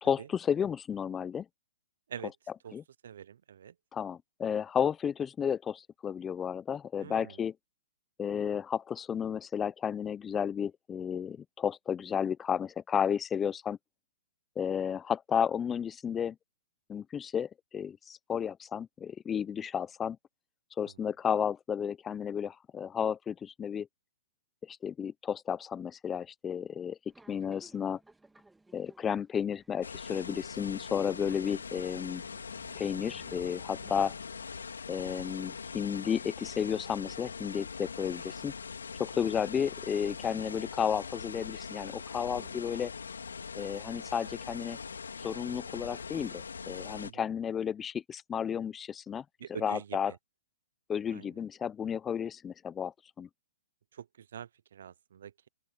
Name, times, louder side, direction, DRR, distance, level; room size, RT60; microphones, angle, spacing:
voice 1, 0.0-1.5 2.7-2.8 3.9-7.5 8.2-13.8 14.6-16.4 16.9-20.2 20.8-23.9 24.6-27.0 27.3-28.0 28.7-32.2 32.8-34.1 34.9-38.5 39.0-42.9 43.5-44.8 45.2-49.2 49.5-50.1 50.9-53.3, left 8 dB, 15° left, 0.7 m, -32 dB
voice 2, 3.0-3.7 7.0-7.4 42.2-42.6 47.0-47.3 49.4-50.2 51.1-51.3 53.9-55.5, right 8 dB, 65° right, 0.6 m, -45 dB
Subway metro underground, 27.1-34.6, right 2 dB, 5° right, 1.9 m, -60 dB
sound 1, 29.8-47.1, left 5 dB, 90° left, 2.6 m, -42 dB
open air
hypercardioid pair, 135°, 0 cm